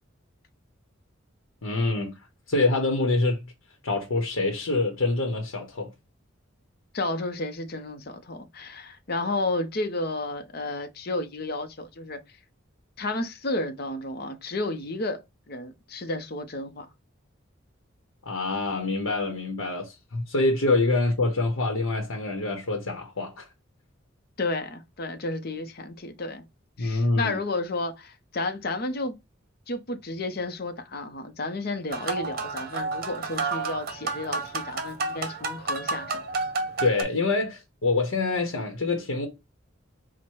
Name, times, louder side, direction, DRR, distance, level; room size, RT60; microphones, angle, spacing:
voice 1, 1.6-2.1 2.5-3.4 3.8-5.9 18.3-23.4 26.8-27.4 36.8-39.3, left 2 dB, 85° left, 0.8 m, -25 dB
voice 2, 6.9-12.2 13.0-15.2 15.5-16.9 24.4-26.4 26.8-29.1 29.7-36.2, left 2 dB, 50° left, 0.7 m, -32 dB
sound 1, 31.9-37.0, right 3 dB, 45° right, 0.7 m, -31 dB
4.4 x 2.1 x 4.6 m
head